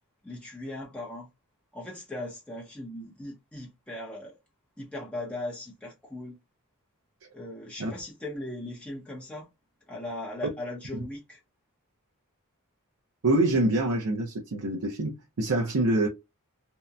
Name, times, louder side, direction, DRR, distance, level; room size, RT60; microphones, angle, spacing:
voice 1, 0.2-1.3 1.7-4.4 4.8-6.4 7.3-9.5 9.9-11.4, left 1 dB, 5° left, 0.7 m, -38 dB
voice 2, 13.2-16.1, right 2 dB, 70° right, 0.6 m, -25 dB
2.7 x 2.1 x 2.3 m
head